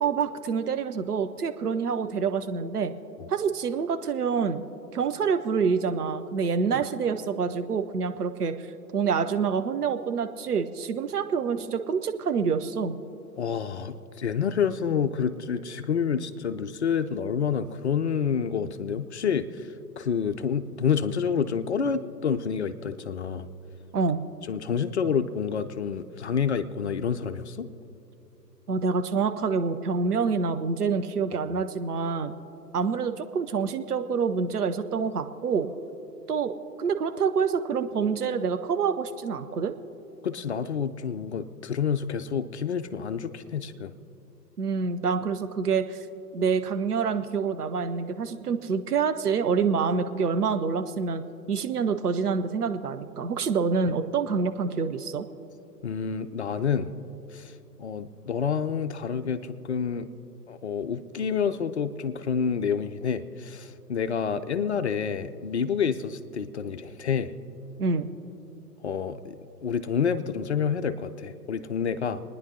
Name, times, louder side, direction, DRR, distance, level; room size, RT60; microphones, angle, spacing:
voice 1, 0.0-2.9 3.3-4.6 4.9-8.6 8.9-13.0 23.9-24.2 28.7-32.3 32.7-35.7 36.3-36.5 36.8-39.7 44.6-46.1 46.3-51.2 51.5-55.3 67.8-68.1, right 5 dB, 65° right, 8 dB, 0.8 m, -27 dB
voice 2, 13.4-19.7 20.0-23.5 24.5-27.7 40.2-43.9 55.8-56.9 57.3-57.5 57.8-60.1 60.5-67.3 68.8-69.4 69.6-72.2, left 7 dB, 45° left, 11 dB, 0.5 m, -28 dB
29.5 x 10.0 x 2.8 m, 2.9 s
figure-of-eight pair, 120°, 49 cm